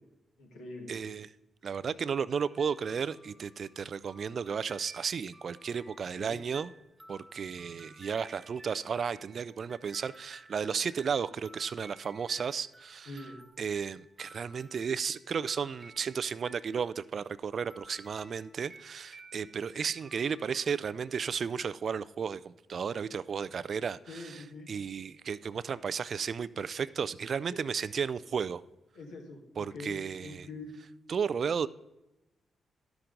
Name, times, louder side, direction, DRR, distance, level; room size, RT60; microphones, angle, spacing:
voice 1, 0.4-1.0 6.1-6.4 13.0-13.4 24.1-24.7 27.5-27.7 28.9-30.7, left 2 dB, 80° left, 1.6 m, -44 dB
voice 2, 0.9-1.3 1.6-6.7 7.1-13.1 13.6-24.2 24.7-28.6 29.6-30.5 31.1-31.7, right 6 dB, 60° right, 0.3 m, -34 dB
sound 1, 2.3-17.3 17.7-21.2, right 1 dB, 20° right, 1.0 m, -56 dB
12.0 x 5.9 x 3.8 m
hypercardioid pair, 40°, 0 cm